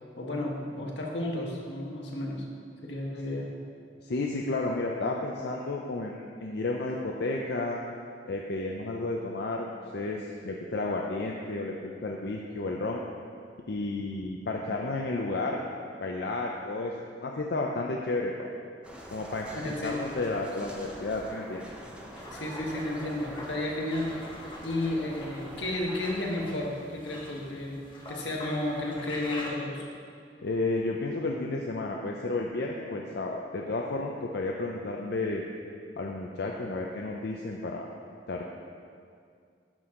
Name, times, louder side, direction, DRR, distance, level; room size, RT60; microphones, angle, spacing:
voice 1, 0.2-2.4 2.8-3.5 19.5-20.0 22.3-24.1 24.6-29.8, left 1 dB, 85° left, -1 dB, 1.4 m, -32 dB
voice 2, 4.0-7.8 8.3-13.0 13.7-15.6 16.0-16.9 17.2-18.5 19.1-21.6 30.4-35.4 36.0-37.9 38.3-38.4, left 2 dB, 65° left, 0 dB, 0.6 m, -32 dB
sound 1, 18.8-26.5, equal, 5° right, 1.0 m, -45 dB
Radiator - Fills up with water, 22.1-29.5, left 1 dB, 30° left, 1.3 m, -45 dB
11.0 x 6.2 x 3.8 m, 2.3 s
head